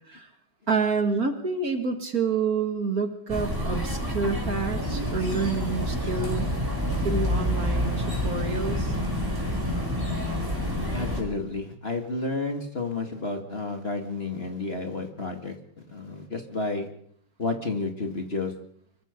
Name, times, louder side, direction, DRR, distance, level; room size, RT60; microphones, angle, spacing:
voice 1, 0.7-6.5 7.0-8.9, right 5 dB, 45° right, 6 dB, 2.4 m, -28 dB
sound 1, 3.3-11.2, equal, 10° right, 6.3 m, -28 dB
voice 2, 10.9-15.6 15.9-16.9 17.4-18.5, left 3 dB, 30° left, 4 dB, 2.3 m, -31 dB
25.5 x 23.0 x 5.3 m, 0.65 s
omnidirectional pair, 2.2 m